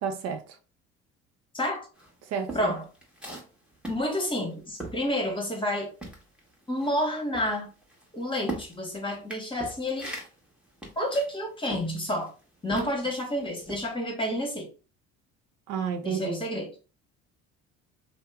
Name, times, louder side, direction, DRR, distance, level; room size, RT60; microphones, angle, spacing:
voice 1, 0.0-0.4 2.3-2.8 12.7-12.9 15.7-16.4, right 6 dB, 60° right, 0.5 m, -31 dB
voice 2, 1.5-1.9 2.5-2.8 3.9-5.9 6.7-7.7 8.1-10.1 11.0-12.3 12.6-14.7 16.0-16.7, left 1 dB, 15° left, 1.1 m, -29 dB
sound 1, 1.9-5.7 6.0-13.2 13.6-13.9, right 2 dB, 5° right, 1.1 m, -41 dB
2.8 x 2.0 x 3.3 m
supercardioid pair, 85°, 29 cm